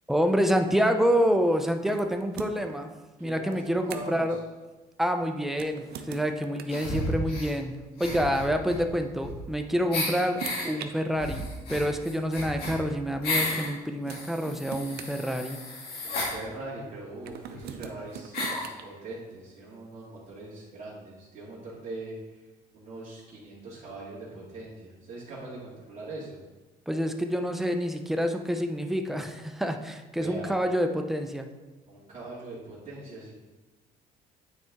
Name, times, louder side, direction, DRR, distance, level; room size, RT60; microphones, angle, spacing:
voice 1, 0.1-2.9 3.2-4.4 5.0-15.6 26.9-31.5, equal, ahead, 5 dB, 0.6 m, -27 dB
sound 1, 1.9-2.8 3.5-4.3 5.5-6.9 8.2-8.3 9.5-10.9 11.9-12.0 13.6-13.7 14.1-15.9 17.2-18.8, right 8 dB, 70° right, 0.6 m, -42 dB
voice 2, 3.2-4.4 16.0-22.4 22.7-26.4 30.1-30.6 31.9-33.3, right 2 dB, 40° right, -11 dB, 2.2 m, -41 dB
sound 2, 6.7-7.5 8.0-9.6 9.9-10.7 11.2-13.7 14.1-16.3 17.2-17.3 17.5-17.6 18.3-18.7, left 1 dB, 70° left, 2.3 m, -33 dB
9.2 x 4.2 x 3.6 m, 1.2 s
cardioid pair, 110°, 17 cm